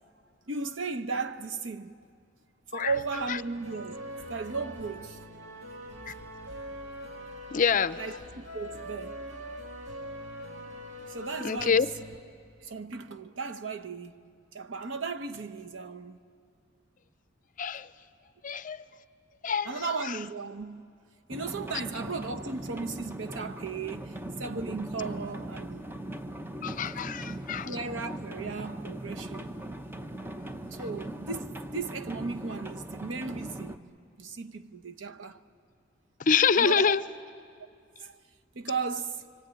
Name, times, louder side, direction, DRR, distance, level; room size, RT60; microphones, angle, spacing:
voice 1, 0.5-1.9 2.7-4.0 4.3-5.2 8.0-9.2 11.1-11.9 12.6-14.1 14.5-16.2 19.6-20.9 21.3-25.8 27.7-29.5 30.7-33.8 34.2-35.4 36.5-36.9 38.0-38.1 38.5-39.2, right 4 dB, 85° right, 0.9 m, -35 dB
sound 1, 3.2-12.2, equal, 65° right, 2.3 m, -43 dB
voice 2, 7.5-8.0 11.4-11.9 17.6-17.9 18.4-18.8 19.4-19.7 26.6-27.7 36.3-37.0, left 6 dB, 45° left, 0.6 m, -25 dB
sound 2, 21.3-33.8, right 1 dB, 10° right, 0.8 m, -39 dB
25.0 x 24.5 x 8.9 m
head